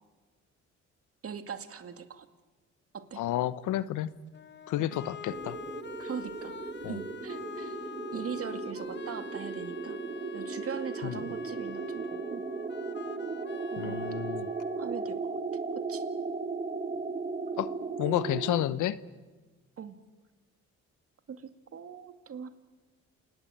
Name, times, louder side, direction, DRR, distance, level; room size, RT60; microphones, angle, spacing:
voice 1, 1.2-2.3 2.9-3.2 4.8-5.0 5.3-5.4 6.0-6.6 6.9-7.8 8.1-10.0 10.3-12.4 13.7-14.5 14.8-15.4 15.7-16.0 19.8-20.0 21.3-22.5, right 7 dB, 50° right, 9 dB, 2.2 m, -41 dB
voice 2, 3.2-4.1 4.7-5.6 6.8-7.0 11.0-11.2 13.8-14.5 17.6-19.0, left 13 dB, 85° left, 17 dB, 1.0 m, -31 dB
sound 1, 4.3-15.3, left 7 dB, 35° left, 1.1 m, -46 dB
sound 2, 5.3-18.6, right 4 dB, 25° right, 1.4 m, -36 dB
28.0 x 19.0 x 8.7 m, 1.3 s
cardioid pair, 90°, 30 cm